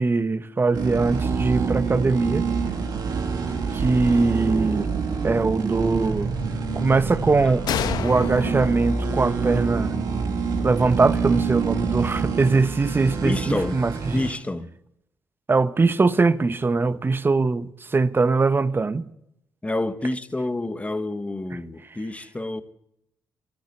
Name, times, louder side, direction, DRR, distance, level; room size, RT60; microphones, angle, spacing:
voice 1, 0.0-2.4 3.7-4.9 5.2-6.3 6.8-7.7 8.0-10.0 10.6-14.2 15.5-19.1, right 3 dB, 30° right, 0.9 m, -21 dB
sound 1, 0.7-14.3, right 5 dB, 70° right, 2.0 m, -26 dB
voice 2, 3.3-3.9 7.4-7.5 13.2-13.8 14.1-14.7 19.6-22.6, left 2 dB, 20° left, 1.2 m, -28 dB
sound 2, 7.7-11.2, left 8 dB, 70° left, 1.0 m, -32 dB
13.5 x 10.5 x 8.3 m
supercardioid pair, 60°, 7 cm